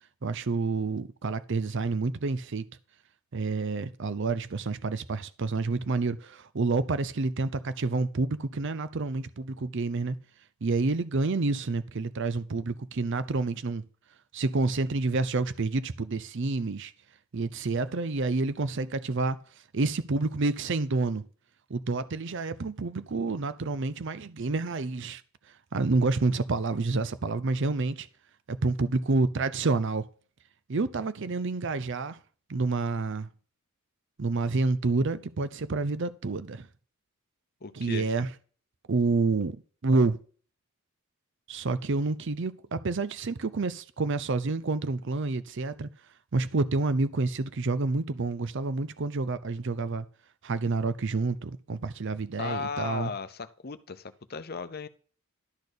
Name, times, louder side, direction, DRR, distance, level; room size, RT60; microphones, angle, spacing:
voice 1, 0.2-2.7 3.3-10.2 10.6-13.8 14.3-16.9 17.3-19.4 19.7-21.2 21.7-25.2 25.5-28.1 28.5-30.1 30.7-32.2 32.5-33.3 34.2-36.7 37.7-38.3 38.9-40.2 41.5-45.9 46.3-50.1 50.4-53.1, right 3 dB, 55° right, 0.6 m, -28 dB
voice 2, 37.6-38.1 52.4-54.9, left 5 dB, 45° left, 0.7 m, -36 dB
12.0 x 4.2 x 6.7 m
head